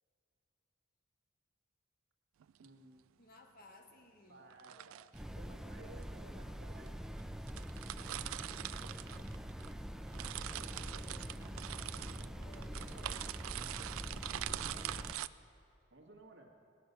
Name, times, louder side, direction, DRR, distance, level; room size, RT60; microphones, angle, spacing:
sound 1, 2.4-2.7 4.5-5.2 6.0-6.1 6.9-7.0 7.2-7.3 7.5-9.7 10.0-15.3, right 13 dB, 85° right, 0.3 m, -43 dB
voice 1, 2.6-3.0 4.3-5.0 5.3-7.0 10.5-11.3 12.1-12.3 14.7-14.9 15.9-16.5, right 2 dB, 60° right, 1 dB, 1.7 m, -57 dB
voice 2, 3.2-4.5 9.0-9.6 12.4-13.3 14.7-15.0, left 2 dB, 45° left, 3 dB, 1.3 m, -60 dB
sound 2, 5.1-15.1, equal, ahead, 0.4 m, -45 dB
sound 3, 9.2-13.9, equal, 90° left, 1.7 m, -62 dB
17.0 x 10.0 x 6.7 m, 2.5 s
head